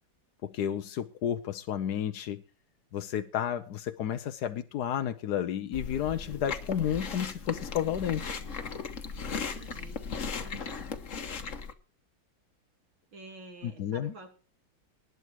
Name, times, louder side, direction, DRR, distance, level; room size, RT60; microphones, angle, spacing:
voice 1, 0.4-2.4 2.9-8.4 13.6-14.1, left 9 dB, 60° left, 8 dB, 1.2 m, -32 dB
Chewing mastication, 5.7-11.7, left 5 dB, 45° left, 1.5 m, -37 dB
voice 2, 9.3-10.9 13.1-14.3, right 3 dB, 75° right, 4 dB, 4.0 m, -49 dB
19.5 x 8.0 x 4.7 m, 0.37 s
omnidirectional pair, 2.1 m